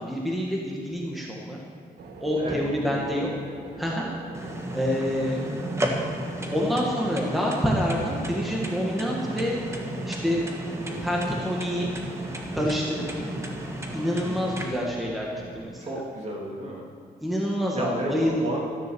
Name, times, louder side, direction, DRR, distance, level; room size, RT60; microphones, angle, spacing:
voice 1, 0.0-1.6 2.2-3.3 3.8-4.1 4.7-5.4 6.5-9.6 10.1-10.4 11.0-11.9 12.5-13.2 13.9-15.3 15.5-15.9 17.2-18.4, equal, ahead, -3 dB, 1.4 m, -27 dB
sound 1, 2.0-15.6, right 3 dB, 75° right, 1.5 m, -45 dB
voice 2, 2.4-3.2 3.9-4.1 13.2-13.4 14.2-14.5 15.8-16.8 17.7-18.6, right 1 dB, 40° right, -2 dB, 2.7 m, -33 dB
sound 2, 4.3-14.6, right 1 dB, 15° right, 1.4 m, -33 dB
13.5 x 10.5 x 6.8 m, 2.1 s
wide cardioid pair, 170°, 17 cm